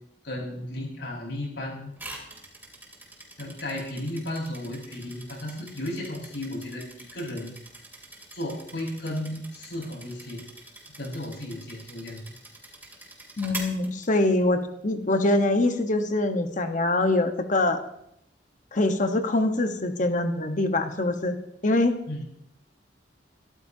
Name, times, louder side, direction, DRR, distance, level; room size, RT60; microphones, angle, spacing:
voice 1, 0.2-1.9 3.4-6.8 7.1-7.5 8.3-10.4 11.0-12.3 22.1-22.3, left 1 dB, 80° left, -2 dB, 5.6 m, -34 dB
sound 1, 2.0-14.6, right 2 dB, 10° right, 3.2 m, -45 dB
voice 2, 13.4-17.8 18.7-21.4 21.6-21.9, left 2 dB, 45° left, 7 dB, 1.3 m, -24 dB
23.0 x 13.5 x 2.9 m, 0.76 s
head